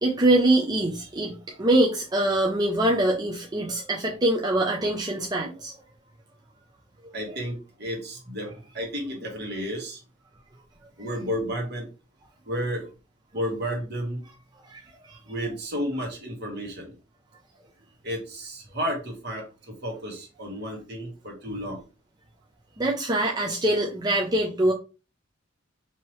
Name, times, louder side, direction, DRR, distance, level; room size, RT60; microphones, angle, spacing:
voice 1, 0.0-5.7 14.7-15.2 22.8-24.7, right 1 dB, 20° right, -2 dB, 0.5 m, -24 dB
voice 2, 7.1-10.0 11.0-11.9 12.4-12.9 13.3-14.2 15.3-17.0 18.0-21.8, equal, 55° right, 0 dB, 1.6 m, -32 dB
4.5 x 2.9 x 3.1 m, 0.32 s
head